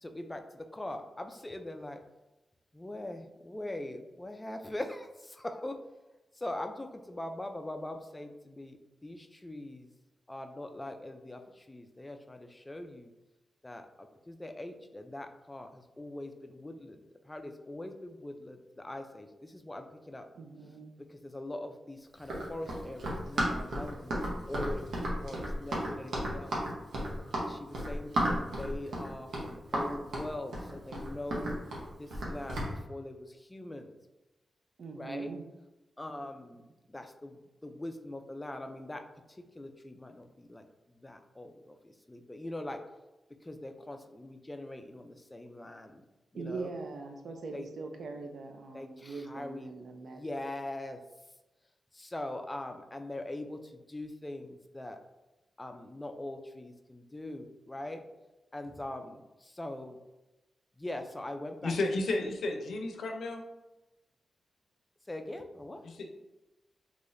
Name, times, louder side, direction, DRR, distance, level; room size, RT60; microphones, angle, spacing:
voice 1, 0.0-2.0 2.7-5.8 6.3-9.9 10.3-13.1 13.6-20.3 21.0-26.6 27.4-31.5 32.0-33.9 34.9-35.3 36.0-36.6 36.9-39.0 39.3-42.8 43.4-46.0 46.3-46.7 47.5-47.7 48.7-51.0 51.9-55.0 55.6-58.0 58.5-60.0 60.8-61.7 65.1-65.8, left 1 dB, 15° left, 6 dB, 0.3 m, -42 dB
voice 2, 20.3-20.9 34.8-35.4 46.3-50.2, right 4 dB, 65° right, 5 dB, 0.5 m, -41 dB
Run, 22.2-32.7, right 1 dB, 85° right, 0.9 m, -33 dB
voice 3, 61.6-63.4 65.8-66.1, left 2 dB, 85° left, 3 dB, 0.5 m, -32 dB
4.0 x 2.9 x 2.5 m, 1.0 s
wide cardioid pair, 115°, 0 cm